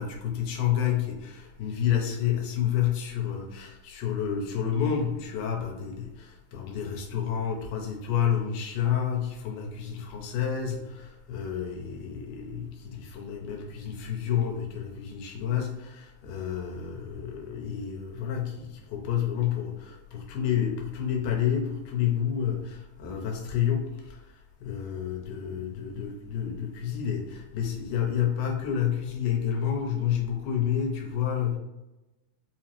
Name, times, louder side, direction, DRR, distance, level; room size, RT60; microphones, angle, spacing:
voice 1, 0.0-31.6, left 9 dB, 85° left, 1 dB, 2.3 m, -29 dB
5.0 x 2.0 x 2.9 m, 1.0 s
omnidirectional pair, 3.6 m